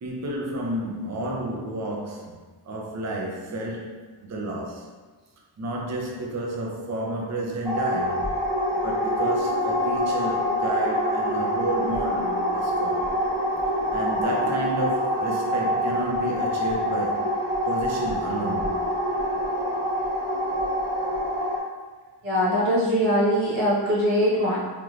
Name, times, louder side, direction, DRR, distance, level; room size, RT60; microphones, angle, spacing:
voice 1, 0.0-2.4 2.7-4.9 5.6-8.3 8.7-13.1 13.9-17.3 17.7-18.7, right 1 dB, 40° right, -1 dB, 0.6 m, -31 dB
sound 1, 7.6-21.6, equal, 65° right, 1.1 m, -26 dB
voice 2, 22.2-24.6, equal, 90° right, -8 dB, 1.3 m, -22 dB
3.5 x 3.0 x 2.4 m, 1.3 s
cardioid pair, 65°, 45 cm